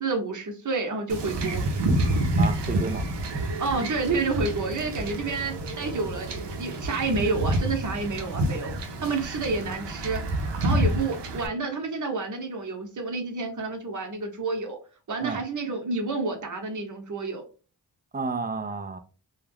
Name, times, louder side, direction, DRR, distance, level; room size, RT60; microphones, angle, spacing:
voice 1, 0.0-1.6 3.6-8.7 9.0-10.2 10.6-14.8 15.1-17.4, right 3 dB, 45° right, 0.9 m, -29 dB
Wind / Ocean / Boat Water vehicle, 1.1-11.5, right 1 dB, 90° right, 0.6 m, -28 dB
voice 2, 2.4-3.1 3.3-3.4 10.7-10.9 15.2-15.4 18.1-19.0, right 4 dB, 25° right, 0.4 m, -31 dB
2.3 x 2.2 x 3.3 m
cardioid pair, 65°, 41 cm